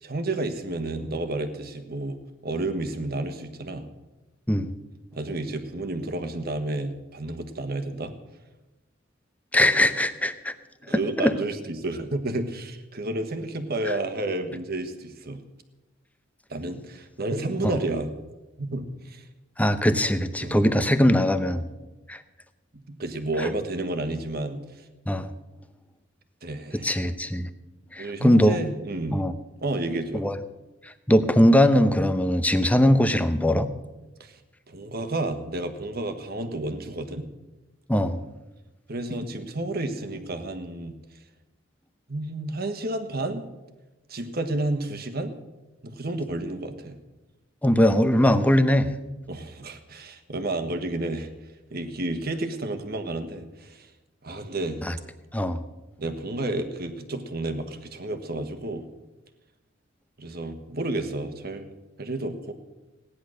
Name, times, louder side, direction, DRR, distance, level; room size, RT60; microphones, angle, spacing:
voice 1, 0.0-2.2 2.4-3.9 5.1-8.1 10.9-15.4 16.5-18.1 18.6-19.2 20.4-20.7 22.9-24.6 26.4-27.1 28.0-29.3 29.6-30.3 34.2-34.4 34.7-37.3 38.9-40.9 42.1-43.4 44.1-45.3 45.8-47.0 49.3-51.3 51.7-53.9 54.2-54.8 56.0-58.8 60.2-61.7 62.0-62.5, right 2 dB, 55° right, 7 dB, 1.4 m, -31 dB
voice 2, 9.5-10.5 11.2-11.4 13.9-14.0 17.6-17.8 19.6-21.7 22.1-22.2 23.4-23.5 25.1-25.3 26.7-27.5 27.9-28.6 29.1-29.3 30.1-30.4 30.8-33.7 37.9-38.2 47.6-48.9 54.8-55.0 55.3-55.6, left 1 dB, 10° left, 11 dB, 0.8 m, -21 dB
16.5 x 10.5 x 6.4 m, 1.1 s
head